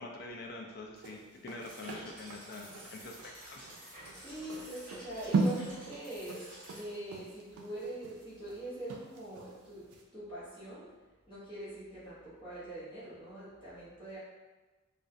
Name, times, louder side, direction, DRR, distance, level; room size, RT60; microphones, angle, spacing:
voice 1, 0.0-3.6, left 2 dB, 45° left, 1 dB, 0.3 m, -45 dB
sound 1, 1.0-9.5 9.9-10.0, right 3 dB, 85° right, 0.4 m, -37 dB
sound 2, 1.7-6.8, right 1 dB, 40° right, 1.1 m, -51 dB
voice 2, 4.2-11.0 11.2-14.2, right 1 dB, 20° left, -11 dB, 0.9 m, -43 dB
2.3 x 2.1 x 2.6 m, 1.2 s
head